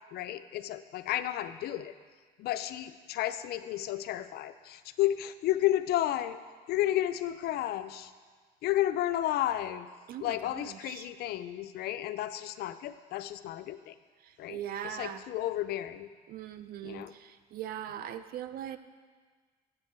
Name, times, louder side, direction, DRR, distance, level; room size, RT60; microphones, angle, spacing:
voice 1, 0.1-1.9 2.4-6.4 6.7-8.1 8.6-9.9 10.2-13.9 14.4-16.1 16.8-17.1, left 13 dB, 70° left, 12 dB, 0.4 m, -32 dB
voice 2, 10.1-11.1 14.2-15.3 16.3-18.8, right 10 dB, 60° right, 12 dB, 0.5 m, -40 dB
7.9 x 7.5 x 4.4 m, 1.5 s
cardioid pair, 110°, 17 cm